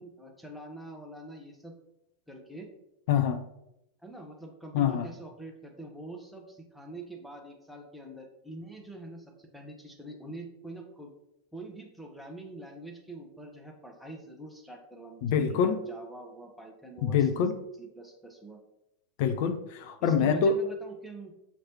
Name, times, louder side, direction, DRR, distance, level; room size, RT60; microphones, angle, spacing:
voice 1, 0.0-1.7 2.3-2.7 4.0-11.1 11.5-17.4 17.8-18.6 20.0-21.3, right 2 dB, ahead, 1 dB, 0.8 m, -45 dB
voice 2, 3.1-3.4 4.7-5.1 15.2-15.8 17.0-17.5 19.2-20.6, left 7 dB, 50° left, 9 dB, 0.4 m, -25 dB
5.8 x 3.1 x 2.9 m, 0.85 s
figure-of-eight pair, 90°, 0 cm